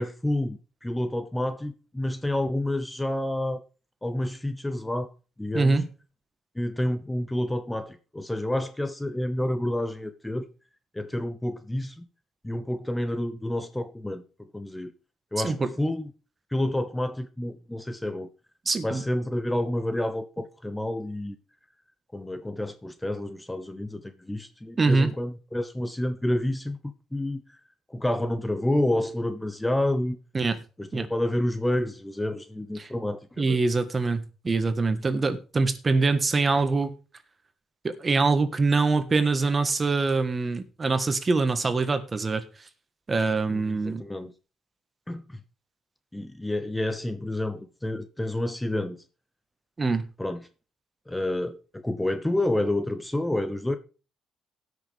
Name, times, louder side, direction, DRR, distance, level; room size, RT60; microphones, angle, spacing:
voice 1, 0.0-3.6 4.0-5.1 5.4-5.8 6.6-10.5 10.9-12.1 12.4-14.9 15.3-16.1 16.5-18.3 18.8-21.4 22.1-26.8 27.1-27.4 27.9-30.2 30.8-33.6 43.5-44.3 45.1-45.4 46.1-49.0 50.2-50.4 51.1-53.8, left 1 dB, 10° left, 0.8 m, -29 dB
voice 2, 5.5-5.8 15.4-15.6 18.6-19.0 24.8-25.1 30.3-30.6 30.9-31.1 32.8-32.9 33.4-36.9 37.8-42.4 43.1-44.0 49.8-50.1, right 3 dB, 30° right, 1.5 m, -24 dB
18.0 x 6.4 x 3.5 m
cardioid pair, 90°, 0 cm